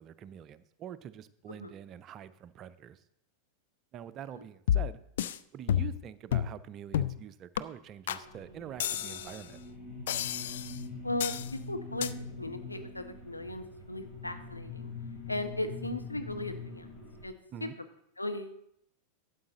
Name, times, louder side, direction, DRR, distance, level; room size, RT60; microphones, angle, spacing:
voice 1, 0.0-3.0 3.9-5.0 5.5-9.6 17.5-17.7, right 10 dB, 30° right, 15 dB, 0.5 m, -45 dB
sound 1, 4.7-5.4 5.7-6.0 6.3-6.6 6.9-7.2 7.6-7.7 8.1-8.2 8.8-9.4 10.1-10.8 11.2-11.5 12.0-12.1, left 10 dB, 60° left, 0.4 m, -30 dB
sound 2, 8.1-17.3, left 3 dB, 35° left, 3.7 m, -44 dB
voice 2, 11.0-12.1 12.4-14.9 15.3-16.9 17.2-17.3 18.2-18.6, left 1 dB, 85° left, 7 dB, 0.9 m, -37 dB
12.5 x 8.2 x 3.9 m, 0.74 s
figure-of-eight pair, 90°, 0 cm